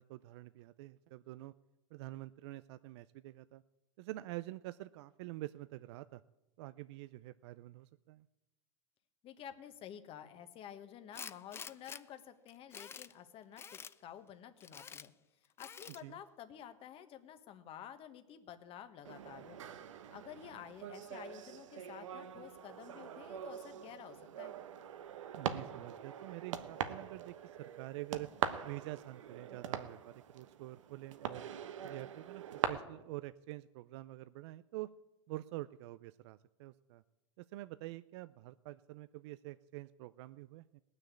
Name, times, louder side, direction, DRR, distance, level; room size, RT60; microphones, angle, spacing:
voice 1, 0.0-1.5 1.9-3.6 4.0-6.2 6.6-8.3 16.0-16.2 25.3-28.3 28.6-31.5 31.8-34.9 35.3-37.0 37.4-40.8, right 18 dB, 60° right, 15 dB, 0.4 m, -47 dB
voice 2, 9.2-15.1 15.6-19.6 20.1-24.5, left 10 dB, 35° left, 9 dB, 1.3 m, -51 dB
Tools, 11.1-12.0 12.5-13.1 13.6-13.9 14.6-15.1 15.6-16.0, left 6 dB, 15° left, 0.4 m, -48 dB
sound 1, 19.0-32.6, right 9 dB, 80° right, 1.1 m, -43 dB
18.5 x 6.5 x 8.4 m, 1.0 s
hypercardioid pair, 115°, 16 cm